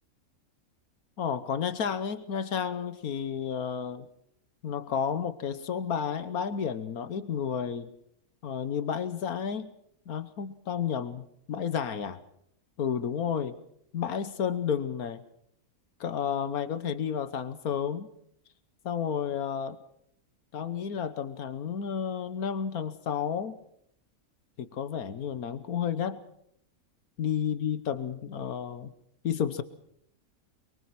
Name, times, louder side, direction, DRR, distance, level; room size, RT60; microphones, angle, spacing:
voice 1, 1.2-4.0 4.6-7.9 8.4-9.7 10.1-12.2 12.8-13.5 13.9-15.2 16.0-18.1 18.8-19.8 20.5-23.6 24.6-26.2 27.2-28.9 29.2-29.6, left 7 dB, 85° left, 13 dB, 1.5 m, -31 dB
24.0 x 23.5 x 5.9 m, 0.70 s
omnidirectional pair, 1.5 m